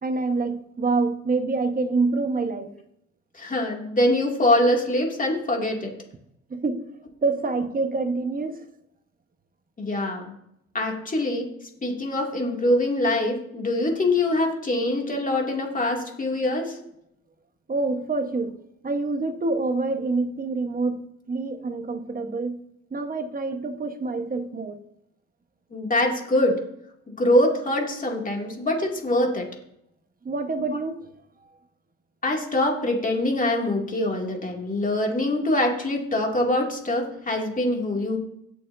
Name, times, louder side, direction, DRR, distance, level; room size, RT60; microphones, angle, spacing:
voice 1, 0.0-2.7 6.5-6.9 7.2-8.6 17.7-18.6 18.8-22.6 22.9-24.8 30.2-31.1, right 3 dB, 30° right, 7 dB, 1.2 m, -26 dB
voice 2, 3.3-5.9 9.8-10.3 10.7-11.5 11.8-16.8 25.7-26.5 27.2-29.5 32.2-38.2, left 1 dB, 25° left, 0 dB, 2.5 m, -24 dB
17.5 x 6.7 x 2.7 m, 0.74 s
cardioid pair, 90°, 30 cm